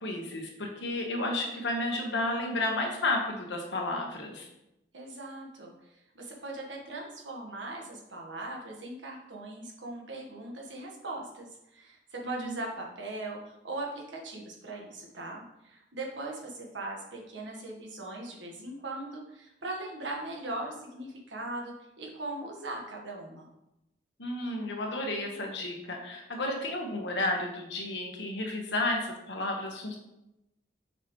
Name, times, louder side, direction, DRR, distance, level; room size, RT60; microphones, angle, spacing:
voice 1, 0.0-4.5 12.2-12.6 24.2-30.0, left 2 dB, 75° left, 1 dB, 1.3 m, -32 dB
voice 2, 4.9-23.5, right 2 dB, 80° right, -1 dB, 1.5 m, -40 dB
6.8 x 5.9 x 3.1 m, 0.89 s
head